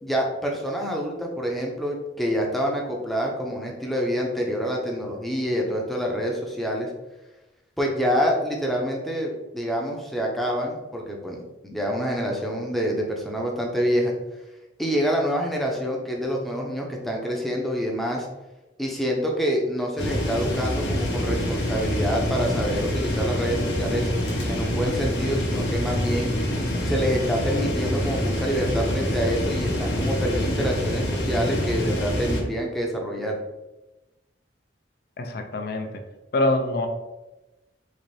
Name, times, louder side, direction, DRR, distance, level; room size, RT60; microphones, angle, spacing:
voice 1, 0.0-6.9 7.8-14.1 14.8-18.3 18.8-24.1 24.5-26.3 26.8-33.4, equal, ahead, -1 dB, 0.6 m, -27 dB
sound 1, 20.0-32.4, equal, 80° left, 0.9 m, -26 dB
voice 2, 35.2-35.9 36.3-36.9, left 2 dB, 60° left, 5 dB, 0.5 m, -24 dB
4.0 x 2.6 x 3.2 m, 1.0 s
head